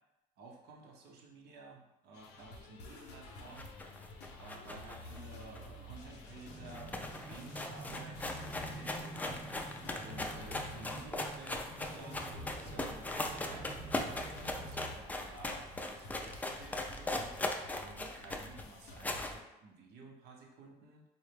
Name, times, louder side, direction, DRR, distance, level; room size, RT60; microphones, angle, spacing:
voice 1, 0.4-3.7 4.4-9.5 10.0-13.7 14.2-21.0, right 3 dB, 70° right, 0 dB, 0.7 m, -53 dB
sound 1, 2.1-19.4, left 1 dB, 90° left, 0.6 m, -51 dB
sound 2, 3.5-6.1 6.4-6.5 6.7-19.4, left 2 dB, 10° left, 0.3 m, -39 dB
sound 3, 6.5-14.9, right 1 dB, 30° right, 0.6 m, -48 dB
4.3 x 2.1 x 3.2 m, 0.92 s
cardioid pair, 110°, 17 cm